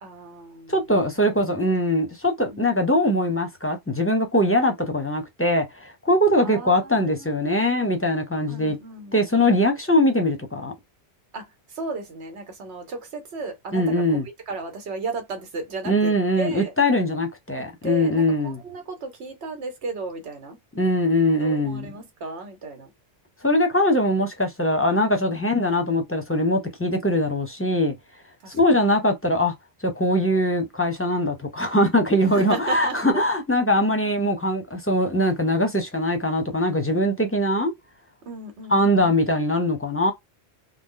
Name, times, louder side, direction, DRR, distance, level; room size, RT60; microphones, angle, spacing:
voice 1, 0.0-1.5 2.5-2.7 6.4-8.0 8.5-9.2 11.3-14.2 14.5-16.1 16.4-16.7 17.6-20.6 21.4-22.9 25.3-25.4 28.4-28.8 32.2-33.3 38.2-39.1, right 3 dB, 90° right, 1.2 m, -35 dB
voice 2, 0.7-8.8 9.1-10.7 13.7-14.2 15.8-18.6 20.8-21.9 23.4-27.9 28.5-29.5 29.8-37.7 38.7-40.1, left 1 dB, 15° left, 0.6 m, -22 dB
3.3 x 2.0 x 3.7 m
omnidirectional pair, 1.1 m